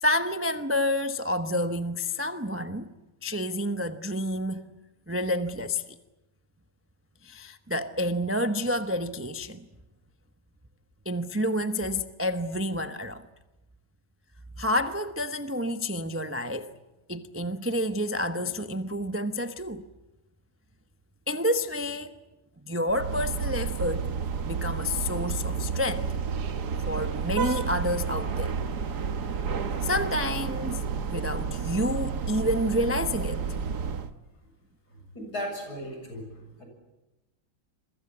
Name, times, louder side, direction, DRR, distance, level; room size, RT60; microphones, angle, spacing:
voice 1, 0.0-2.9 3.2-4.6 5.1-5.9 7.2-9.7 11.0-13.3 14.6-16.7 17.1-19.8 21.3-22.2 22.6-24.1 24.4-26.1 26.9-28.6 29.8-33.4, left 1 dB, 15° right, 0.4 m, -29 dB
sound 1, 22.9-34.1, right 6 dB, 55° right, 1.8 m, -31 dB
voice 2, 34.9-36.7, equal, 50° left, 8.3 m, -37 dB
28.0 x 23.0 x 8.6 m
omnidirectional pair, 2.2 m